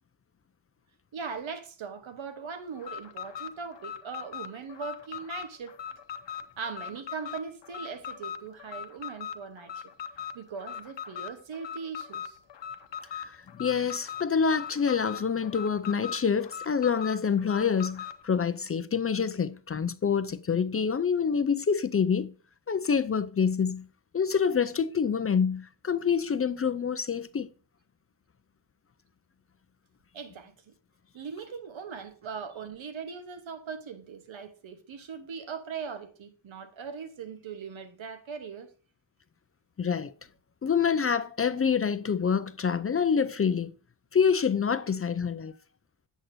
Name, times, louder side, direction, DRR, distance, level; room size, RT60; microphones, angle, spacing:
voice 1, 1.1-5.8 6.6-9.9 10.3-12.4 30.1-30.7 31.1-38.7, right 6 dB, 85° right, 1.1 m, -40 dB
Alarm, 2.8-18.2, left 8 dB, 70° left, 0.8 m, -40 dB
voice 2, 13.1-22.3 22.7-23.9 24.1-27.5 39.8-40.1 40.6-43.7 44.1-45.5, left 6 dB, 30° left, 0.4 m, -27 dB
8.0 x 7.6 x 2.7 m
wide cardioid pair, 100°, 46 cm